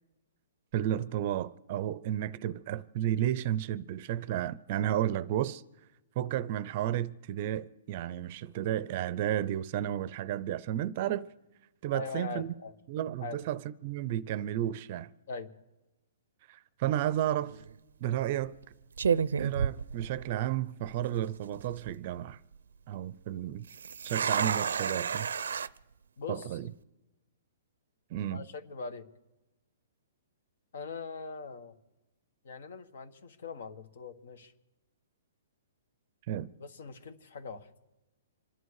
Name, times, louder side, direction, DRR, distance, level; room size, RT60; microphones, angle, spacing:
voice 1, 0.7-5.6 6.2-11.3 11.8-12.5 12.9-15.1 16.5-17.6 18.0-18.5 19.4-22.4 22.9-23.6 24.0-25.3 26.3-26.7 28.1-28.4 36.3-36.5, right 12 dB, 35° right, 0.5 m, -32 dB
voice 2, 11.9-12.7 13.2-13.4 15.3-15.5 24.2-24.5 26.2-26.6 28.3-29.0 30.7-31.8 32.4-34.5 36.6-37.7, left 4 dB, 65° left, 1.5 m, -41 dB
sound 1, 17.4-17.7 18.5-18.6 19.0-20.5 20.8-20.9 21.5-21.9 23.7-25.7, right 6 dB, 90° right, 0.5 m, -31 dB
27.0 x 11.0 x 4.8 m
hypercardioid pair, 165°, 0 cm